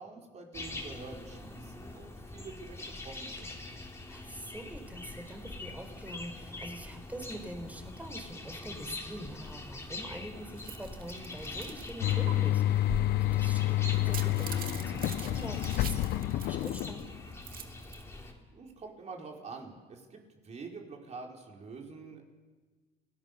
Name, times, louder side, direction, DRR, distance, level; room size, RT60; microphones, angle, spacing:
voice 1, 0.0-2.8 3.0-3.6 18.5-22.2, right 4 dB, 40° right, 1 dB, 4.8 m, -46 dB
sound 1, 0.5-18.3, left 2 dB, 15° left, 3.7 m, -43 dB
voice 2, 4.1-17.1, right 1 dB, 10° right, 6 dB, 4.1 m, -45 dB
sound 2, 10.6-11.9 12.3-12.4 13.9-17.0 17.3-18.0, right 9 dB, 60° right, 1.8 m, -45 dB
sound 3, 12.0-17.4, left 15 dB, 70° left, 0.6 m, -29 dB
29.0 x 18.0 x 6.9 m, 1.3 s
cardioid pair, 110°, 17 cm